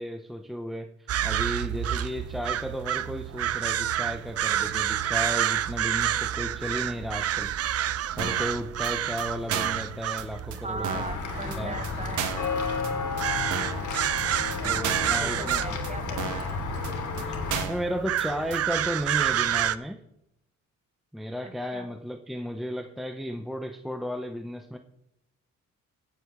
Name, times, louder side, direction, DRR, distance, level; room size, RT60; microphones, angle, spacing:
voice 1, 0.0-7.5 8.2-11.0 11.6-11.8 14.6-15.8 17.7-20.0 21.1-24.8, equal, ahead, 6 dB, 0.7 m, -34 dB
sound 1, 1.1-19.8, right 11 dB, 55° right, 0.6 m, -29 dB
sound 2, 8.2-8.5 8.8-8.9 9.2-9.3 9.5-9.8 10.2-10.3 10.5-10.6 10.8-11.2 11.5-11.6 11.8-11.9 12.2-12.5 12.8-12.9 13.2-13.3 13.5-13.8 14.2-14.3 14.5-14.6 14.8-15.2 15.5-15.6 15.8-15.9 16.2-16.5 16.8-16.9 17.2-17.3 17.5-17.8 18.2-18.3 18.5-18.6, right 7 dB, 75° right, 1.5 m, -33 dB
voice 2, 10.6-12.4 14.6-16.7 21.4-21.9, right 3 dB, 25° right, 9 dB, 1.4 m, -39 dB
Walk footsteps / Bell, 10.9-17.6, left 4 dB, 75° left, 2.9 m, -32 dB
15.5 x 7.9 x 3.6 m, 0.82 s
cardioid pair, 90°, 30 cm